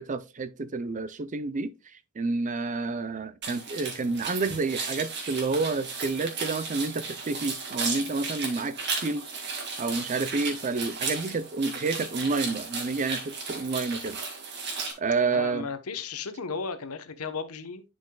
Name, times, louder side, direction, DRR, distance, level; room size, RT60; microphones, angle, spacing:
voice 1, 0.0-1.7 2.2-9.3 9.8-14.2 15.0-15.7, right 3 dB, 35° right, 0.5 m, -29 dB
sound 1, 3.4-14.9, right 4 dB, 50° right, 2.0 m, -35 dB
voice 2, 15.2-17.8, left 5 dB, 80° left, 0.9 m, -35 dB
10.5 x 5.4 x 2.2 m
head